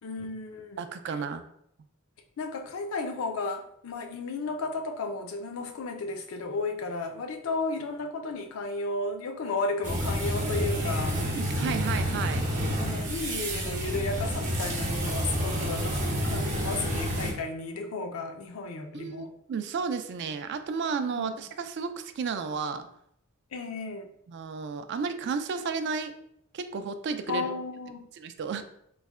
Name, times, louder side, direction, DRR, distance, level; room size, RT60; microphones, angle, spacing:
voice 1, 0.0-0.8 2.4-11.2 12.8-19.3 21.1-21.4 23.5-24.1 27.3-28.1, left 3 dB, 75° left, 5 dB, 0.4 m, -33 dB
voice 2, 0.8-1.4 11.3-12.4 18.9-22.9 24.3-26.2 26.5-27.5 28.2-28.6, right 5 dB, 55° right, 10 dB, 0.3 m, -32 dB
sound 1, 9.8-17.3, equal, 35° right, 0.8 m, -29 dB
3.2 x 2.1 x 3.5 m, 0.72 s
head